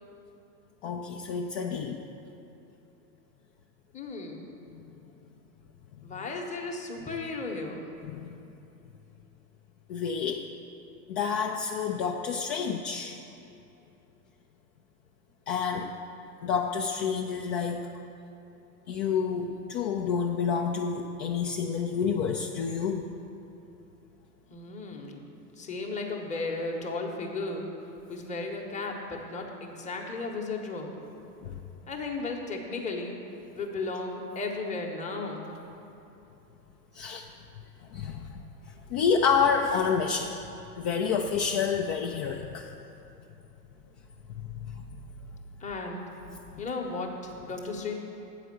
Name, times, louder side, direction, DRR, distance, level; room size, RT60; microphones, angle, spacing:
voice 1, 0.8-2.0 4.7-4.8 8.0-8.3 9.9-10.5 11.1-13.2 15.5-15.9 16.4-17.9 18.9-23.1 31.4-31.6 36.9-37.3 37.9-38.4 38.9-40.3 40.8-42.7 44.7-45.0 46.5-46.6, left 6 dB, 45° left, 2 dB, 0.6 m, -29 dB
voice 2, 3.9-4.5 6.0-7.8 24.5-27.7 28.1-31.0 31.9-33.2 33.6-35.5 45.6-46.1 46.6-47.9, left 3 dB, 15° left, 1 dB, 1.0 m, -35 dB
8.3 x 5.0 x 7.6 m, 2.9 s
hypercardioid pair, 110°, 48 cm